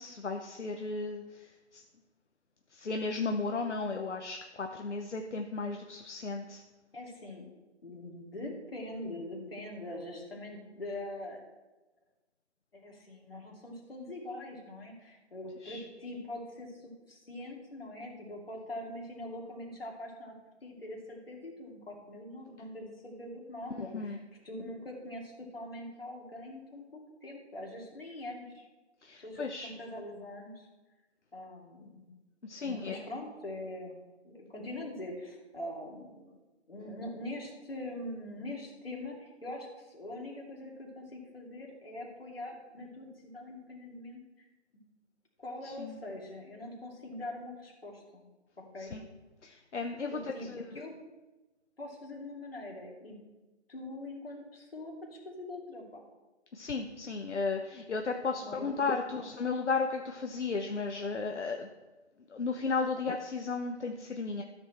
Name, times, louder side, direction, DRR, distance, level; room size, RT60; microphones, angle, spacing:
voice 1, 0.0-1.8 2.7-6.6 15.6-15.8 23.9-24.2 29.0-29.7 32.4-33.0 45.6-46.0 48.8-49.0 49.4-50.8 56.5-61.7 62.3-64.4, left 4 dB, 75° left, 4 dB, 0.9 m, -34 dB
voice 2, 6.9-7.5 7.8-11.4 12.7-24.2 24.4-28.7 29.2-30.7 31.3-32.1 32.6-34.0 34.3-36.4 36.7-44.2 45.4-48.2 48.7-48.9 50.1-51.0 51.8-53.2 53.7-56.0 58.4-58.7 59.0-59.3, left 1 dB, 55° left, -1 dB, 2.6 m, -43 dB
13.0 x 6.2 x 4.4 m, 1.1 s
figure-of-eight pair, 175°, 35 cm